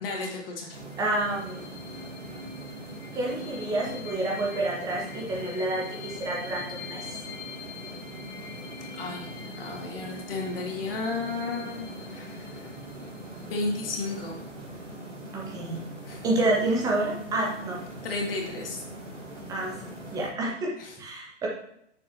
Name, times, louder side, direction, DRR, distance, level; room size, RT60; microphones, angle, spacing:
voice 1, 0.0-0.8 9.0-12.7 13.4-14.4 16.1-16.2 18.0-18.8 20.8-21.0, left 3 dB, 50° left, 0 dB, 2.4 m, -33 dB
sound 1, 0.7-20.3, right 1 dB, 70° right, 2.8 m, -42 dB
sound 2, 0.8-14.2, left 4 dB, 20° left, 2.8 m, -45 dB
voice 2, 1.0-1.7 3.1-7.2 15.3-15.8 16.2-17.8 19.5-19.9 20.1-21.5, right 2 dB, 10° right, -2 dB, 0.9 m, -29 dB
9.4 x 6.8 x 2.9 m, 0.75 s
figure-of-eight pair, 125°, 37 cm